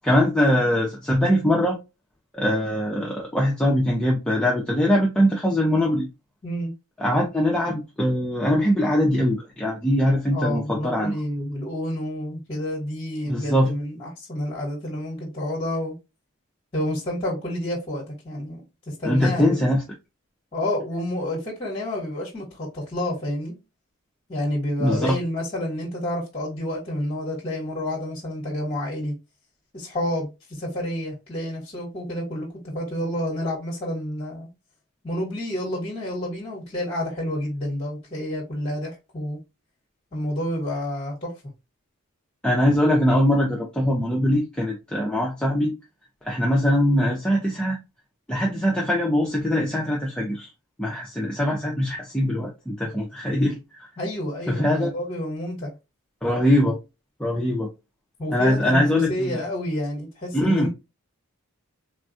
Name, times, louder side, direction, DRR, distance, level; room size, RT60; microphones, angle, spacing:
voice 1, 0.0-1.8 2.3-6.1 7.0-11.2 13.3-13.7 19.0-19.8 24.8-25.2 42.4-45.7 46.2-47.8 48.3-50.5 50.8-53.9 54.5-54.9 56.2-56.8 57.2-57.7 58.3-59.4 60.3-60.7, equal, 5° left, 0.4 m, -22 dB
voice 2, 10.3-15.9 16.7-19.6 20.5-23.5 24.3-29.1 29.7-34.5 35.0-39.4 40.1-41.3 54.0-55.7 58.2-60.7, left 1 dB, 25° left, 0.9 m, -29 dB
3.5 x 2.2 x 2.5 m
head